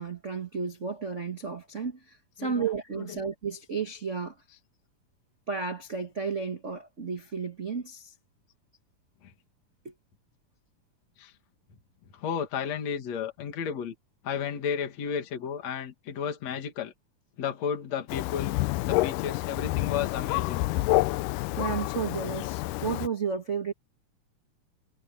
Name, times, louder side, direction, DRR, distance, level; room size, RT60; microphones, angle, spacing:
voice 1, 0.0-4.4 5.5-8.1 9.8-9.9 21.6-23.7, right 5 dB, 85° right, 0.6 m, -33 dB
voice 2, 2.4-3.2 4.5-4.6 9.2-9.3 11.2-11.3 12.1-13.9 14.2-16.9 17.4-18.6 18.8-20.7, left 7 dB, 55° left, 3.0 m, -33 dB
Thunder, 18.1-23.1, left 19 dB, 80° left, 2.0 m, -28 dB
omnidirectional pair, 3.9 m